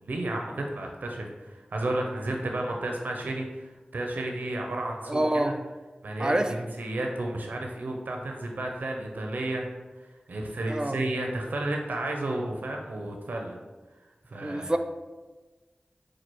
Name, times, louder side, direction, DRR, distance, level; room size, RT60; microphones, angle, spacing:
voice 1, 0.0-5.2 6.0-9.8 10.3-13.6 14.3-14.7, right 1 dB, 85° right, 1 dB, 0.5 m, -32 dB
voice 2, 5.1-5.6 6.2-6.7 10.7-11.1 14.4-14.8, right 1 dB, 25° right, 6 dB, 0.4 m, -27 dB
4.5 x 2.3 x 4.4 m, 1.2 s
cardioid pair, 45°, 3 cm